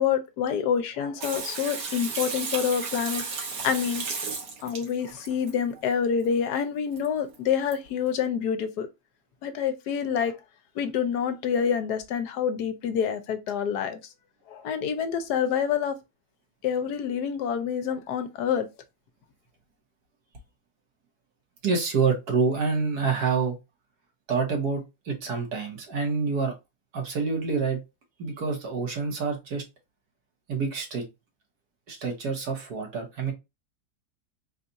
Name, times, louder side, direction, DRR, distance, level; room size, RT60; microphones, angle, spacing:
voice 1, 0.0-3.2 3.6-4.1 4.6-8.9 9.4-10.3 10.8-14.0 14.5-15.9 16.6-18.7, left 7 dB, 75° left, 1.2 m, -27 dB
Water tap faucet / Sink (filling or washing), 1.2-5.5 7.0-7.1 7.3-7.4 7.7-7.8, right 4 dB, 90° right, 1.8 m, -34 dB
voice 2, 21.6-23.6 24.3-26.5 26.9-27.8 28.2-29.6 30.5-31.0 31.9-33.3, right 5 dB, 70° right, 1.8 m, -27 dB
4.1 x 2.4 x 3.9 m
omnidirectional pair, 1.8 m